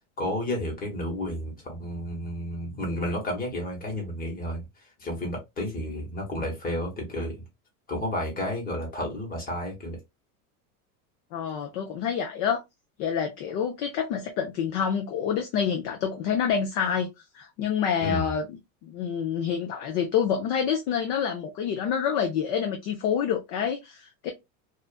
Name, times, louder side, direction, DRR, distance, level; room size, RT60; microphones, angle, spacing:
voice 1, 0.2-7.4 7.9-10.0 18.0-18.3, left 1 dB, 20° left, 1.1 m, -31 dB
voice 2, 11.3-12.6 13.0-17.1 17.3-24.3, left 7 dB, 40° left, 0.4 m, -27 dB
2.5 x 2.5 x 2.3 m
supercardioid pair, 145°, 46 cm